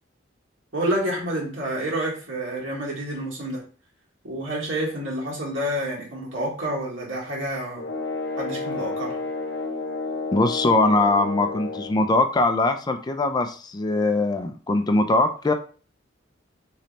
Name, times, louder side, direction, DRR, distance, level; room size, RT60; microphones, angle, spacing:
voice 1, 0.7-3.6 4.2-7.8 8.4-9.2, right 1 dB, 85° right, -3 dB, 1.6 m, -28 dB
sound 1, 7.8-12.0, left 3 dB, 65° left, 0.7 m, -30 dB
voice 2, 10.3-15.5, left 2 dB, 20° left, 7 dB, 0.4 m, -21 dB
3.2 x 3.0 x 4.0 m, 0.39 s
head